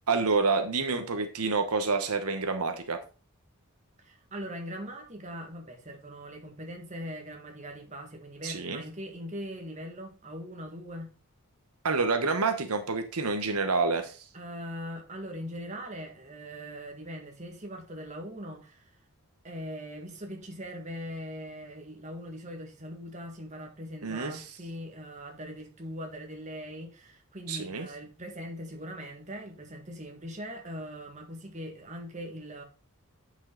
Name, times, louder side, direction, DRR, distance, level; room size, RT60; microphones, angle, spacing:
voice 1, 0.1-3.0 8.4-8.8 11.8-14.2 24.0-24.4 27.5-27.9, right 4 dB, 85° right, 1.1 m, -28 dB
voice 2, 4.0-11.1 14.3-18.9 19.4-32.6, equal, 30° right, 1.7 m, -41 dB
9.3 x 5.5 x 3.9 m
head